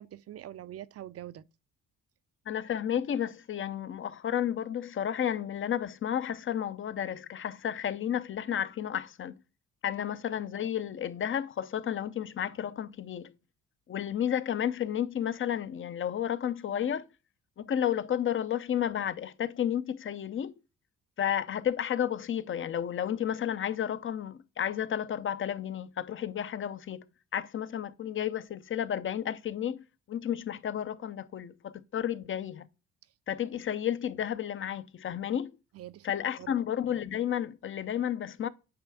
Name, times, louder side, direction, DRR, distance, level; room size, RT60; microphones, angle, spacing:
voice 1, 0.0-1.4 33.5-33.6 35.7-36.1 36.4-36.6, right 12 dB, 50° right, 0.5 m, -44 dB
voice 2, 2.5-9.4 9.8-13.3 13.9-17.1 17.6-20.5 21.2-27.0 27.3-29.8 30.1-32.7 33.3-35.5 36.0-38.5, left 9 dB, 40° left, 0.6 m, -32 dB
8.8 x 3.4 x 4.7 m
cardioid pair, 90°, 30 cm